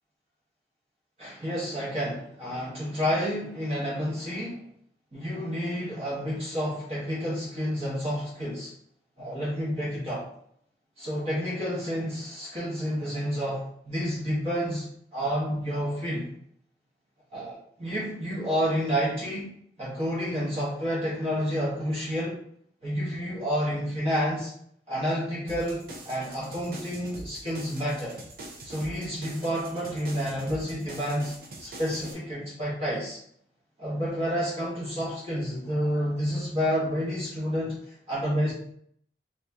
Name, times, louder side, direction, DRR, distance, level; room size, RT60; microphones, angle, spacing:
voice 1, 1.2-4.6 5.1-8.7 9.2-10.3 11.0-14.9 15.1-16.3 17.3-19.5 19.8-22.4 22.8-24.5 24.9-28.2 28.6-33.2 33.8-37.8 38.1-38.5, equal, 35° right, -7 dB, 1.2 m, -29 dB
sound 1, 25.5-32.1, right 1 dB, 55° right, 0.7 m, -44 dB
3.0 x 2.7 x 3.4 m, 0.68 s
head